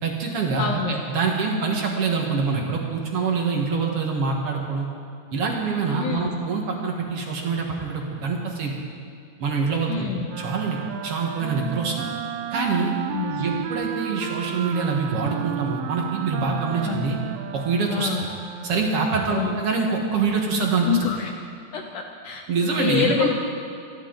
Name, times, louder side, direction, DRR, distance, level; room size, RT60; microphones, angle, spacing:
voice 1, 0.0-4.9 5.3-8.7 9.4-10.1 10.4-12.1 12.5-12.9 13.4-17.2 17.5-18.3 18.6-20.9 22.5-23.3, right 4 dB, 55° right, 0 dB, 1.8 m, -25 dB
voice 2, 0.6-1.0 6.0-6.4 9.9-10.3 13.1-13.6 16.8-17.1 17.9-18.2 19.3-19.6 20.9-21.3 21.7-22.5 22.8-23.3, left 8 dB, 75° left, 3 dB, 1.9 m, -27 dB
Wind instrument woodwind instrument, 10.2-18.9, right 10 dB, 85° right, 2.6 m, -33 dB
27.5 x 11.0 x 4.0 m, 2.5 s
omnidirectional pair, 4.5 m